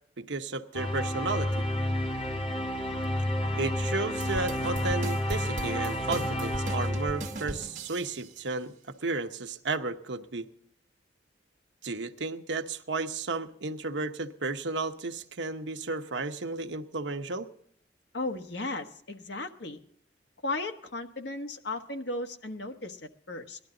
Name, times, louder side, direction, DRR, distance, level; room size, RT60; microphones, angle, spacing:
voice 1, 0.2-1.7 3.5-10.5 11.8-17.5, right 3 dB, 90° right, 7 dB, 1.0 m, -33 dB
sound 1, 0.7-7.8, left 1 dB, 30° left, 1.2 m, -30 dB
sound 2, 4.2-8.3, right 2 dB, 45° right, 1.4 m, -40 dB
voice 2, 18.1-19.8 20.4-23.6, left 2 dB, 75° left, 6 dB, 1.3 m, -35 dB
19.0 x 12.5 x 3.8 m, 0.65 s
head